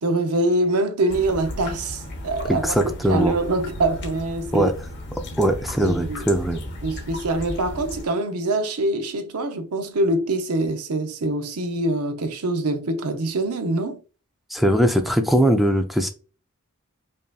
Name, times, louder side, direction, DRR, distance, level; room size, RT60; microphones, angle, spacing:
voice 1, 0.0-4.7 5.8-6.3 6.8-14.0, right 2 dB, 80° right, 0.7 m, -24 dB
sound 1, 1.1-8.1, left 1 dB, 50° left, 1.1 m, -35 dB
voice 2, 2.5-3.3 4.5-4.7 5.4-6.6 14.5-16.1, equal, ahead, 0.4 m, -20 dB
5.3 x 2.7 x 2.3 m
head